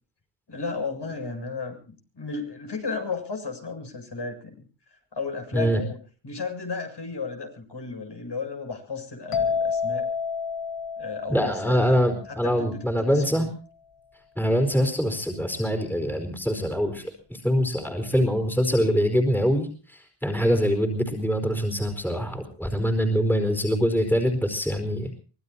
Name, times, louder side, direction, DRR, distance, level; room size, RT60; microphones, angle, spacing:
voice 1, 0.5-4.7 5.1-6.0 6.2-10.1 11.0-12.0 12.3-13.5, left 4 dB, 55° left, 3 dB, 7.6 m, -34 dB
sound 1, 9.3-12.9, left 6 dB, 85° left, 2.7 m, -30 dB
voice 2, 11.3-13.5 14.4-25.2, equal, 5° left, 6 dB, 4.4 m, -24 dB
24.0 x 19.0 x 2.9 m, 0.39 s
wide cardioid pair, 90°, 49 cm